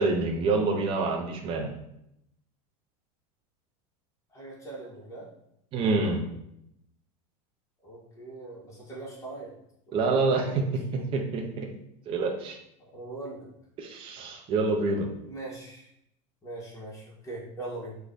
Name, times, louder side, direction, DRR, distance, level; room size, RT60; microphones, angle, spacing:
voice 1, 0.0-1.7 5.7-6.2 9.9-10.6 11.1-11.7 12.1-12.6 13.8-15.1, right 3 dB, 30° right, 2 dB, 0.5 m, -27 dB
voice 2, 4.3-5.3 7.8-9.5 9.9-11.0 12.9-13.5 15.2-15.9 16.4-18.0, right 2 dB, 20° left, -5 dB, 1.3 m, -41 dB
3.1 x 2.3 x 3.8 m, 0.78 s
supercardioid pair, 125°, 17 cm